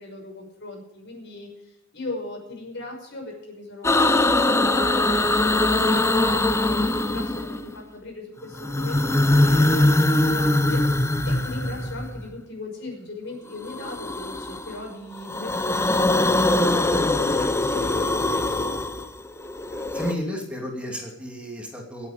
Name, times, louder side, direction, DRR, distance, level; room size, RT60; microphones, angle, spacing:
voice 1, 0.0-1.5 1.9-18.7, left 2 dB, 60° left, 2 dB, 5.7 m, -38 dB
sound 1, 3.8-7.8 8.5-12.3 13.6-14.8 15.1-20.1, left 2 dB, 15° left, 0.8 m, -22 dB
voice 2, 19.7-22.1, equal, 5° right, 0 dB, 2.7 m, -32 dB
25.5 x 8.7 x 5.1 m, 0.87 s
head